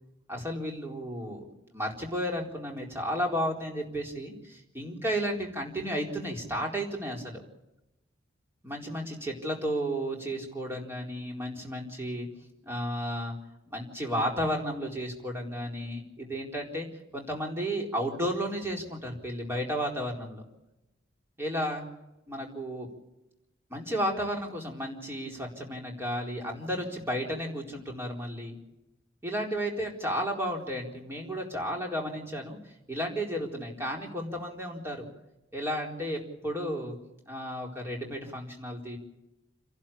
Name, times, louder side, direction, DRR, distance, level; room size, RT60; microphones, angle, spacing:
voice 1, 0.3-1.4 1.7-7.4 8.6-12.3 12.6-13.3 13.7-16.9 17.1-20.4 21.4-21.8 22.3-22.9 23.7-28.6 29.2-32.6 32.9-35.0 35.5-36.9 37.3-39.0, equal, 10° right, 0 dB, 4.2 m, -33 dB
29.5 x 12.0 x 8.7 m, 0.94 s
head